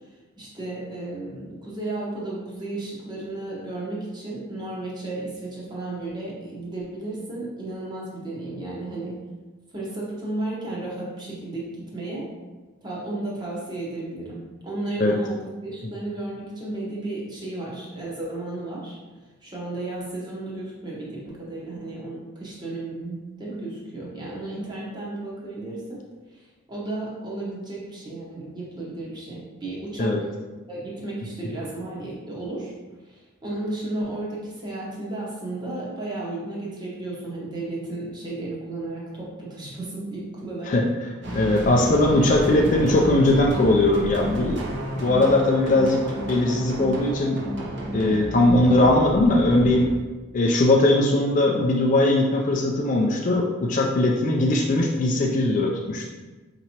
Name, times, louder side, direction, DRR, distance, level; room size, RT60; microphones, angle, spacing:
voice 1, 0.4-9.2 9.7-12.3 12.8-19.0 19.4-26.0 26.3-30.2 30.7-32.7 33.0-40.8, right 2 dB, 20° right, -5 dB, 0.9 m, -33 dB
sound 1, 41.2-50.0, right 1 dB, 55° right, 0.7 m, -32 dB
voice 2, 41.3-44.6 45.0-47.4 47.9-49.9 50.3-56.1, left 2 dB, 35° left, 0 dB, 0.3 m, -20 dB
4.5 x 2.9 x 2.8 m, 1.3 s
head